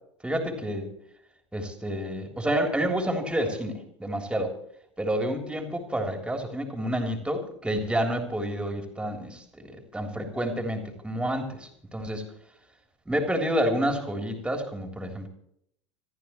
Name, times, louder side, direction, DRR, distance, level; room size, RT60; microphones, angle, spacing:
voice 1, 0.2-0.9 1.5-4.5 5.0-12.2 13.0-15.3, right 1 dB, 5° right, 4 dB, 3.4 m, -29 dB
26.5 x 14.0 x 3.1 m, 0.72 s
figure-of-eight pair, 80°, 16 cm